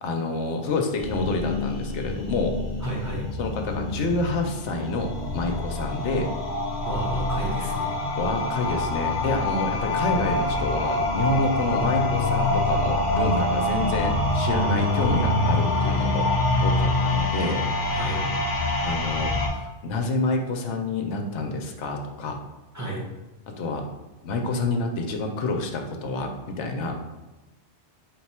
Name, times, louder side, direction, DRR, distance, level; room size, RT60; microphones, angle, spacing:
voice 1, 0.0-2.5 3.4-6.3 8.2-16.3 16.6-17.6 18.8-19.3 19.6-22.4 23.6-23.8 24.2-27.1, left 3 dB, 75° left, 3 dB, 0.9 m, -28 dB
sound 1, 1.0-19.5, left 2 dB, 45° left, 0.6 m, -25 dB
voice 2, 2.8-3.3 6.8-7.9 17.9-18.2 22.7-23.0, right 1 dB, 15° right, -5 dB, 0.7 m, -32 dB
4.0 x 2.3 x 4.2 m, 1.1 s
omnidirectional pair, 1.2 m